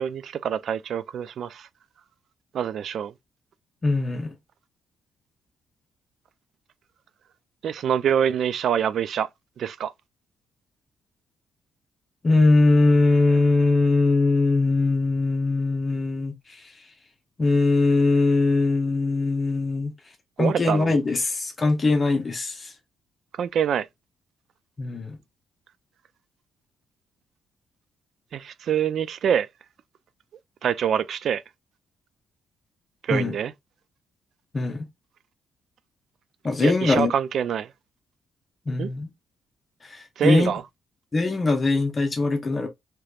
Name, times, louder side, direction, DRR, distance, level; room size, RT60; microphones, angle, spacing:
voice 1, 0.0-1.7 2.5-3.1 7.6-9.3 9.6-9.9 20.4-20.9 23.4-23.9 28.3-29.5 30.6-31.4 33.0-33.5 36.6-37.7 38.8-38.9 40.2-40.6, right 8 dB, 65° right, 0.3 m, -25 dB
voice 2, 3.8-4.3 12.2-16.7 17.4-19.9 20.4-22.7 24.8-25.2 33.1-33.3 34.5-34.9 36.4-37.1 38.7-39.1 39.8-40.5 41.1-42.7, left 3 dB, 30° left, 0.8 m, -21 dB
3.2 x 3.0 x 2.4 m
cardioid pair, 90°, 0 cm